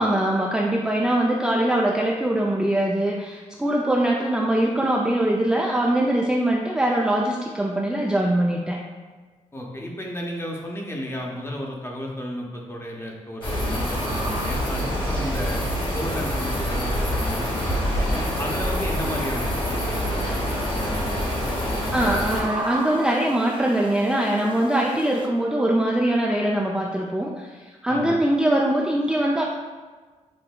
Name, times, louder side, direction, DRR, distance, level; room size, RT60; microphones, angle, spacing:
voice 1, 0.0-8.8 21.9-29.4, right 1 dB, 5° right, -3 dB, 0.3 m, -22 dB
voice 2, 9.5-15.6 15.9-22.1 27.9-28.1, equal, 20° left, -1 dB, 0.7 m, -33 dB
sound 1, 13.4-22.4, equal, 40° left, 1.1 m, -26 dB
sound 2, 13.4-25.3, right 2 dB, 35° right, 0.7 m, -38 dB
5.2 x 2.2 x 2.2 m, 1.4 s
cardioid pair, 65°, 13 cm